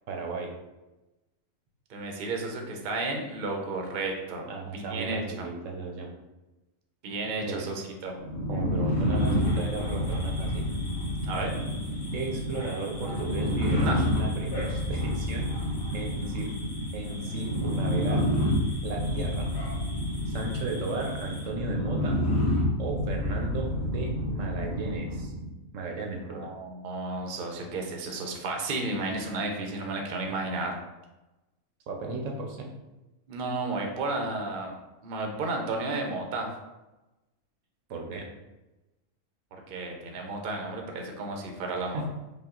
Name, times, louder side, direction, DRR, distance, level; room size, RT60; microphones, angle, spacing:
voice 1, 0.1-0.5 4.5-6.1 7.4-7.6 8.5-10.7 12.1-16.5 16.9-18.3 18.8-19.5 20.3-22.2 22.8-25.3 25.7-26.5 31.9-32.7 37.9-38.3 41.9-42.1, right 3 dB, 75° right, 2 dB, 1.0 m, -35 dB
voice 2, 1.9-4.4 4.7-5.5 7.0-8.2 11.3-11.6 13.7-14.1 26.2-30.8 33.3-34.7 35.0-36.5 39.7-42.1, right 2 dB, 50° right, 2 dB, 0.7 m, -32 dB
sound 1, 8.2-25.5, left 1 dB, 55° left, 1.4 m, -29 dB
sound 2, 9.1-21.5, left 1 dB, 70° left, 1.8 m, -45 dB
5.3 x 2.3 x 3.7 m, 1.0 s
omnidirectional pair, 1.4 m